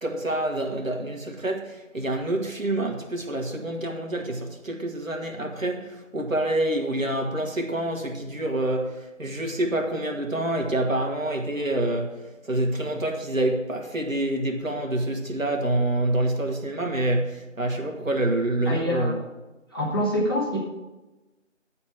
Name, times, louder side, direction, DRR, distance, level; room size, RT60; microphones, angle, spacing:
voice 1, 0.0-19.2, right 1 dB, 85° right, 1.7 m, -27 dB
voice 2, 18.7-19.2 19.7-20.6, equal, 20° left, 1.3 m, -25 dB
9.8 x 4.3 x 7.5 m
figure-of-eight pair, 170°, 39 cm